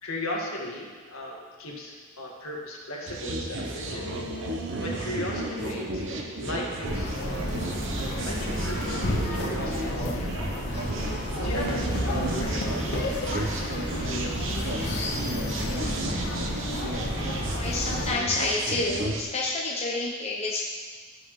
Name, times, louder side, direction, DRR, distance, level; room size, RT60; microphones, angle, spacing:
voice 1, 0.0-4.1 4.5-6.1 6.4-7.6 8.3-10.5 11.4-14.7, left 1 dB, 70° left, -2 dB, 1.9 m, -36 dB
sound 1, 3.0-6.8 7.2-16.6, right 1 dB, 90° right, 1.4 m, -40 dB
sound 2, 3.1-19.2, right 2 dB, 60° right, 1.0 m, -33 dB
sound 3, 6.9-18.1, left 1 dB, 50° left, 1.3 m, -31 dB
voice 2, 17.3-20.6, left 2 dB, 30° left, -3 dB, 0.9 m, -29 dB
16.0 x 6.2 x 3.2 m, 1.5 s
head